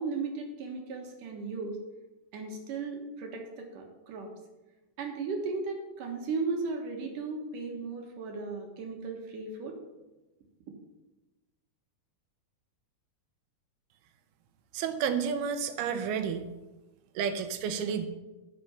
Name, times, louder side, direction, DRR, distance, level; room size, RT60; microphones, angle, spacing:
voice 1, 0.0-1.8 2.3-4.3 5.0-9.8, right 4 dB, 65° right, 2 dB, 2.8 m, -36 dB
voice 2, 14.7-16.5 17.2-18.1, right 7 dB, 85° right, 9 dB, 2.8 m, -31 dB
14.0 x 6.0 x 5.7 m, 1.1 s
omnidirectional pair, 4.3 m